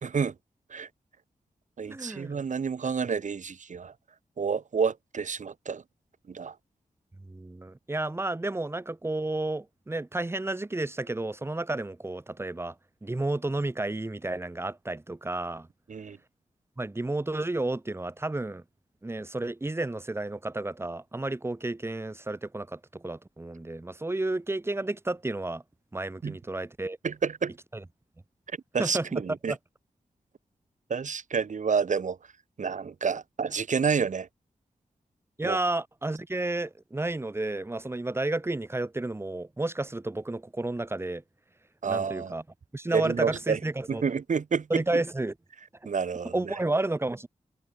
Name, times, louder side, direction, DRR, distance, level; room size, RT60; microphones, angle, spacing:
voice 1, 0.0-0.3 0.7-0.9 1.8-3.9 4.4-5.8 6.3-6.5 15.9-16.2 26.2-26.4 27.0-27.5 28.7-29.5 30.9-32.2 32.6-34.3 35.4-35.6 41.8-42.3 42.9-43.6 43.9-44.8 45.8-46.3, right 6 dB, 65° right, 2.9 m, -29 dB
voice 2, 1.8-2.4 7.2-12.7 13.0-15.7 16.8-18.6 19.0-25.6 25.9-27.0 27.7-27.8 28.8-29.1 29.5-29.6 35.4-41.2 41.9-42.4 42.7-44.0 44.7-45.3 46.3-47.3, right 2 dB, 20° right, 1.5 m, -31 dB
wide cardioid pair, 90°, 14 cm